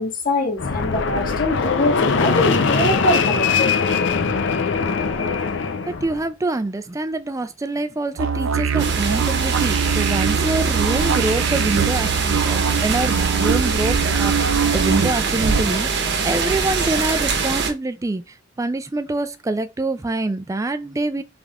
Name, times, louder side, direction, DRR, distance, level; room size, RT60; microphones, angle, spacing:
voice 1, 0.0-3.7, left 1 dB, 45° left, 1.4 m, -23 dB
Fixed-wing aircraft airplane, 0.6-6.2, left 5 dB, 65° left, 0.6 m, -21 dB
voice 2, 5.9-21.2, right 2 dB, 15° right, 0.3 m, -25 dB
sound 1, 8.2-15.6, right 6 dB, 85° right, 0.4 m, -23 dB
sound 2, 8.8-17.7, right 4 dB, 60° right, 0.9 m, -23 dB
5.2 x 3.5 x 2.4 m
head